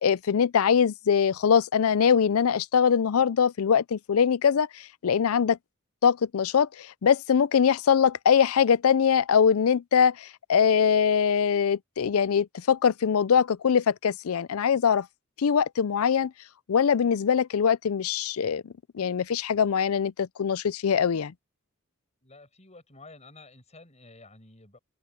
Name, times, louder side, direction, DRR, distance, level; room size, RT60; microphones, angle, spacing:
voice 1, 0.0-5.6 6.0-15.1 15.4-16.3 16.7-18.6 18.9-21.3, left 7 dB, 80° left, 0.5 m, -22 dB
voice 2, 22.2-24.8, left 2 dB, 30° left, 7.6 m, -51 dB
head